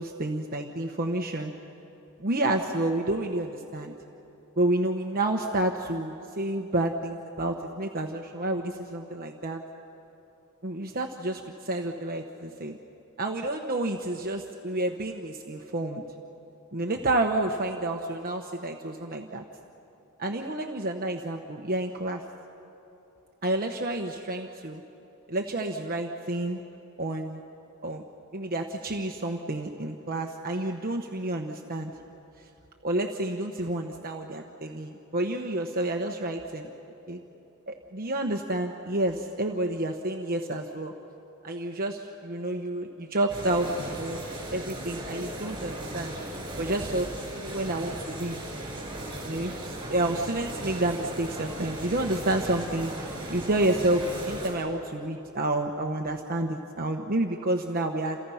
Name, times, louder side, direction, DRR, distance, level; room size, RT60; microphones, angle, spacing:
voice 1, 0.0-1.5 2.2-3.9 4.6-9.6 10.6-12.8 13.2-16.0 16.7-19.4 20.2-22.2 23.4-24.8 25.3-26.6 27.0-27.4 27.8-28.0 28.3-31.9 32.8-36.7 37.1-37.2 37.7-40.9 41.4-44.2 44.5-46.1 46.6-48.4 49.2-58.2, right 1 dB, 45° right, 3 dB, 1.1 m, -29 dB
sound 1, 43.3-54.5, right 1 dB, 20° right, 7.6 m, -37 dB
28.5 x 28.5 x 5.8 m, 3.0 s
head